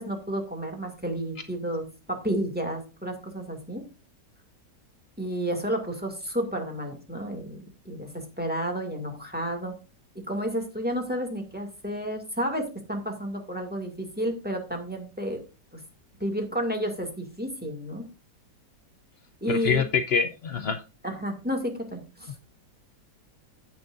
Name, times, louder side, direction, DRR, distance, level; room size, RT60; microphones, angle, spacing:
voice 1, 0.0-3.8 5.2-9.8 10.3-15.4 15.7-15.8 16.2-18.0 19.4-19.8 21.0-22.3, equal, 5° right, 2 dB, 2.1 m, -31 dB
voice 2, 19.5-20.8, left 6 dB, 75° left, 8 dB, 0.5 m, -25 dB
15.5 x 6.1 x 2.5 m, 0.30 s
omnidirectional pair, 1.9 m